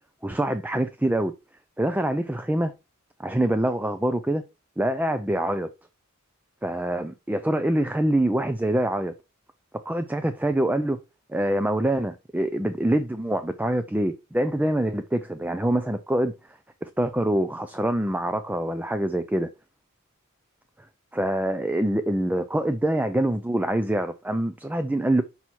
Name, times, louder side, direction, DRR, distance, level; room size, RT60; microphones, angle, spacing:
voice 1, 0.2-1.3 1.8-2.7 3.2-4.4 4.8-5.7 6.6-9.1 9.9-11.0 11.3-16.3 16.8-19.5 21.1-25.2, right 1 dB, 5° right, 0.4 m, -25 dB
5.9 x 5.6 x 4.5 m
head